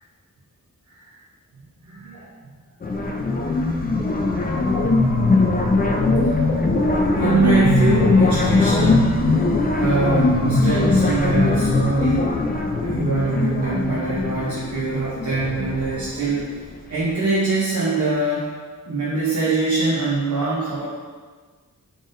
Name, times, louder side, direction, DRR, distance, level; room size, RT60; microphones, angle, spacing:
voice 1, 1.8-2.3 3.0-3.7 4.4-6.0 7.1-9.1 9.8-12.3 12.8-16.5 16.9-18.5 18.9-20.9, right 3 dB, 55° right, -7 dB, 0.7 m, -23 dB
sound 1, 2.8-16.6, left 3 dB, 30° left, 0.4 m, -20 dB
3.8 x 3.5 x 2.5 m, 1.5 s
wide cardioid pair, 60°, 34 cm